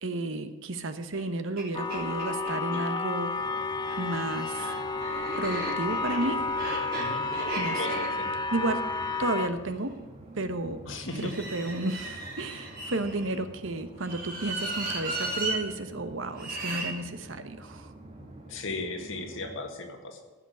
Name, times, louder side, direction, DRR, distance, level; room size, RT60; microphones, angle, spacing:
voice 1, 0.0-3.3 4.0-4.7 5.4-6.4 7.5-7.8 8.5-8.8 9.2-9.9 10.3-10.8 11.2-17.9, right 2 dB, 65° right, 10 dB, 1.0 m, -32 dB
sound 1, 1.1-1.2 1.6-1.7 1.9-2.8 3.7-9.9 11.1-13.3 14.0-15.6 16.3-16.9, right 2 dB, 45° right, 3.5 m, -36 dB
sound 2, 1.7-9.5, left 4 dB, 20° left, 0.6 m, -31 dB
sound 3, 3.4-19.6, right 1 dB, 25° right, 1.8 m, -48 dB
voice 2, 6.9-7.3 7.8-8.3 10.9-11.3 15.4-15.5 18.5-20.2, left 3 dB, 65° left, 2 dB, 1.9 m, -36 dB
14.5 x 6.0 x 8.1 m, 1.3 s
head